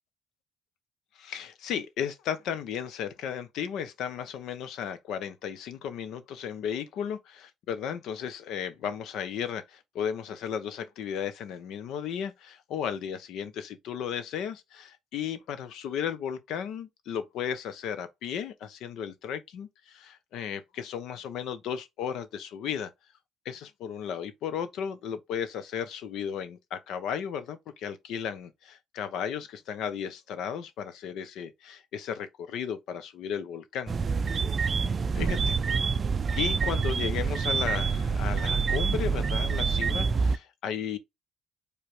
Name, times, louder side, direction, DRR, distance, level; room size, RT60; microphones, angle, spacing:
voice 1, 1.2-22.9 23.4-33.9 34.4-34.8 35.1-35.6 36.4-41.0, left 8 dB, 70° left, 0.8 m, -35 dB
sound 1, 33.9-40.4, right 5 dB, 35° right, 0.4 m, -27 dB
4.8 x 3.3 x 3.2 m
cardioid pair, 110°, 0 cm